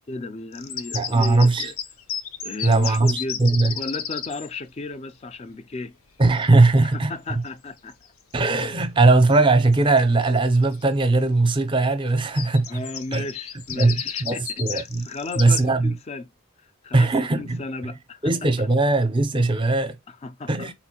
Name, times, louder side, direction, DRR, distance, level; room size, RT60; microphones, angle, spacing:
voice 1, 0.1-1.7 2.4-3.4 3.7-5.9 6.9-8.0 12.7-16.3 16.6-17.1 17.4-18.3 18.6-18.7 20.1-20.7, left 3 dB, 30° left, 0.3 m, -35 dB
sound 1, 0.5-4.5 7.9-8.1 8.6-9.0 9.3-9.4 9.7-10.8 12.2-15.6, left 8 dB, 75° left, 0.6 m, -33 dB
voice 2, 0.9-1.7 2.6-3.7 6.2-7.4 8.3-12.8 13.1-13.2 13.7-15.1 15.4-15.9 16.9-17.6 18.2-19.9 20.5-20.7, right 2 dB, 20° right, 0.5 m, -19 dB
4.1 x 2.5 x 2.8 m
head